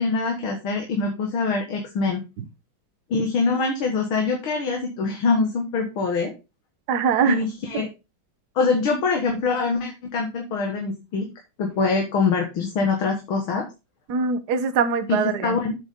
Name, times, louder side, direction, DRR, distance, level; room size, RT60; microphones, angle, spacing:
voice 1, 0.0-2.2 3.1-6.3 7.2-7.9 8.6-11.3 11.6-13.7 15.1-15.7, left 4 dB, 80° left, 2.4 m, -24 dB
voice 2, 6.9-7.4 7.7-7.8 14.1-15.6, right 6 dB, 60° right, 1.4 m, -22 dB
8.4 x 7.1 x 3.6 m
omnidirectional pair, 2.3 m